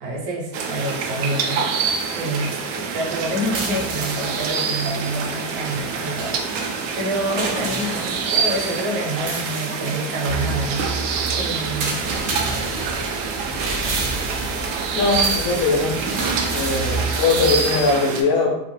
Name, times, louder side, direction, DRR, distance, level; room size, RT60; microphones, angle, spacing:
voice 1, 0.0-1.6 2.1-10.9 11.4-12.0, right 1 dB, 60° right, -1 dB, 0.9 m, -27 dB
sound 1, 0.5-18.2, right 5 dB, 90° right, 0.5 m, -26 dB
sound 2, 3.2-18.0, right 3 dB, 40° right, 0.4 m, -30 dB
voice 2, 14.9-16.0 16.5-18.7, left 4 dB, 30° left, -1 dB, 0.5 m, -21 dB
2.4 x 2.1 x 3.1 m, 0.86 s
cardioid pair, 170°, 37 cm